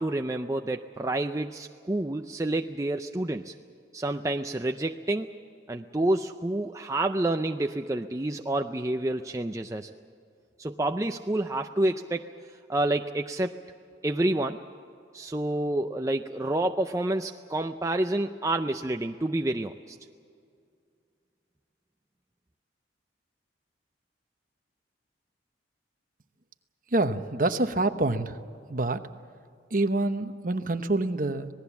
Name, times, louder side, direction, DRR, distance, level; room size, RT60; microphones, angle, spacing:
voice 1, 0.0-3.5 3.9-5.3 5.7-9.9 10.6-12.3 12.7-13.6 14.0-14.6 15.1-20.0, right 1 dB, 15° right, 5 dB, 0.5 m, -28 dB
voice 2, 26.9-28.4 28.7-29.0 29.7-31.5, right 2 dB, 45° right, 9 dB, 1.0 m, -26 dB
26.5 x 18.5 x 7.3 m, 2.4 s
head